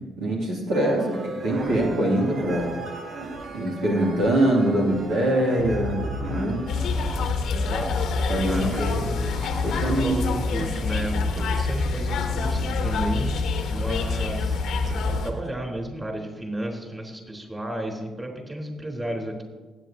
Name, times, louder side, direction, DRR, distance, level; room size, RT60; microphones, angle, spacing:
voice 1, 0.2-2.8 3.5-6.7 8.3-9.1 9.6-10.2, right 1 dB, 75° right, -3 dB, 2.6 m, -23 dB
sound 1, 0.7-11.6 12.2-12.3 13.0-13.1 13.3-13.4 13.7-14.2 14.5-14.9 15.3-15.5, right 2 dB, 55° right, 1.2 m, -36 dB
sound 2, 6.7-15.3, left 4 dB, 70° left, 1.2 m, -26 dB
voice 2, 7.5-7.9 8.5-9.3 9.8-13.4 13.7-19.4, right 1 dB, 20° right, 1 dB, 3.7 m, -33 dB
19.5 x 8.1 x 2.8 m, 1.2 s
hypercardioid pair, 50°, 0 cm